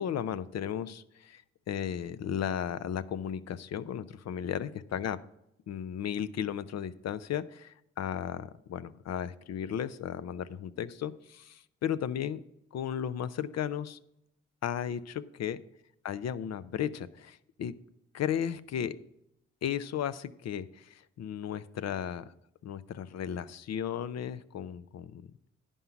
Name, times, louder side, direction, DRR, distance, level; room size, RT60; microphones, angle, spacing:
voice 1, 0.0-1.4 1.7-5.2 5.7-12.4 12.7-14.0 14.6-15.6 16.0-17.7 18.1-18.9 19.6-22.3 22.6-25.3, left 9 dB, 60° left, 14 dB, 0.6 m, -35 dB
9.9 x 5.4 x 5.8 m, 0.80 s
supercardioid pair, 55°, 29 cm